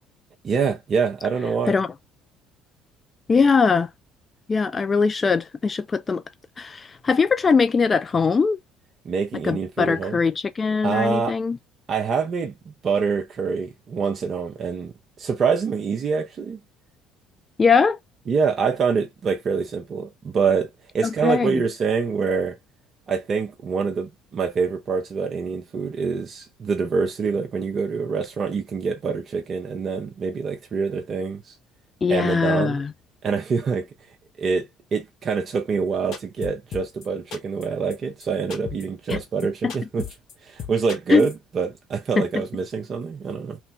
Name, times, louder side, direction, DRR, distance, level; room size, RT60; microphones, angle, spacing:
voice 1, 0.4-1.7 9.0-10.2 10.8-11.4 11.9-16.6 18.3-20.7 20.9-22.6 23.1-31.6 32.1-32.8 33.2-33.9 34.4-40.1 40.4-43.6, right 5 dB, 40° right, 0.6 m, -25 dB
voice 2, 3.3-3.9 4.5-6.2 6.6-8.6 9.4-11.6 17.6-18.0 21.2-21.6 32.0-32.9 39.1-39.2 39.6-39.7 41.1-41.3 42.2-42.3, left 5 dB, 30° left, 0.3 m, -21 dB
sound 1, 36.1-37.1 37.3-37.7 37.9-38.0 38.2-38.3 38.5-38.8 39.1-39.4 39.7-40.3 40.6-41.3, left 8 dB, 55° left, 1.3 m, -35 dB
3.1 x 2.4 x 3.1 m
figure-of-eight pair, 55°, 0 cm